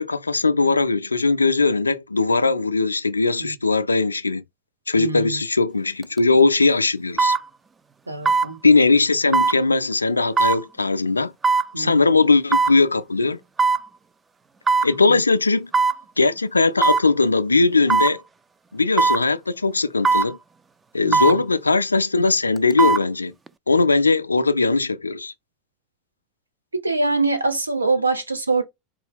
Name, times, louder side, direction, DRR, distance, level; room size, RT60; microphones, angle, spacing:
voice 1, 0.0-4.4 4.9-7.4 8.6-11.3 11.8-13.4 14.8-15.7 16.2-18.2 18.7-20.4 20.9-23.3 23.7-25.3, left 3 dB, 90° left, 0.3 m, -19 dB
voice 2, 4.9-5.4 8.1-8.6 11.7-12.0 15.1-15.2 21.0-21.4 26.7-28.6, right 3 dB, 90° right, 0.7 m, -24 dB
sound 1, 6.0-6.2 7.2-7.4 8.3-8.5 9.3-9.6 10.4-10.6 11.4-11.7 12.5-12.8 13.6-13.9 14.7-14.9 15.7-16.0 16.8-17.1 17.9-18.2 19.0-19.2 20.0-20.3 21.1-21.4 22.6-23.0 23.5-23.6, right 4 dB, 20° right, 0.3 m, -19 dB
4.6 x 2.2 x 3.5 m
figure-of-eight pair, 80°, 0 cm